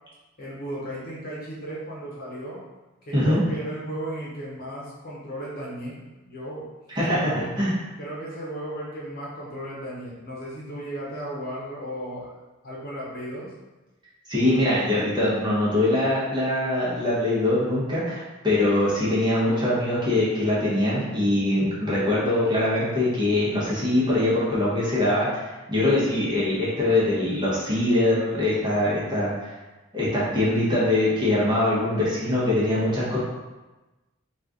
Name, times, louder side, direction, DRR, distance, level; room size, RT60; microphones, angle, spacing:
voice 1, 0.4-2.6 3.1-6.7 7.2-7.5 8.0-12.3 12.6-13.5, right 1 dB, 45° left, -5 dB, 0.9 m, -35 dB
voice 2, 6.9-7.8 14.3-25.4 25.7-29.5 29.9-33.2, left 1 dB, 20° right, -8 dB, 1.0 m, -23 dB
3.1 x 2.4 x 3.7 m, 1.1 s
head